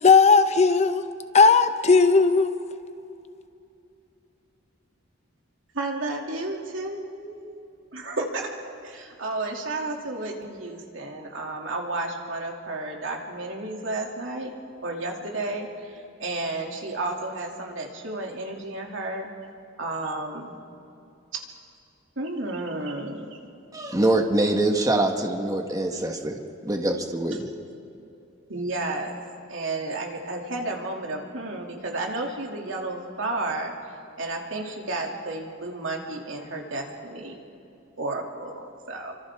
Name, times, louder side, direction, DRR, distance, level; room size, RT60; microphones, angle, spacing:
voice 1, 0.0-1.0 1.3-2.5, left 4 dB, 35° left, 0.8 m, -17 dB
voice 2, 5.7-7.6 7.9-8.5 8.8-14.5 14.8-19.3 19.8-20.6 22.2-23.4 28.5-29.2 29.5-37.4 38.0-39.1, right 2 dB, 75° right, 2.9 m, -32 dB
voice 3, 23.7-27.5, right 2 dB, 20° right, 1.6 m, -24 dB
30.0 x 25.0 x 3.8 m
head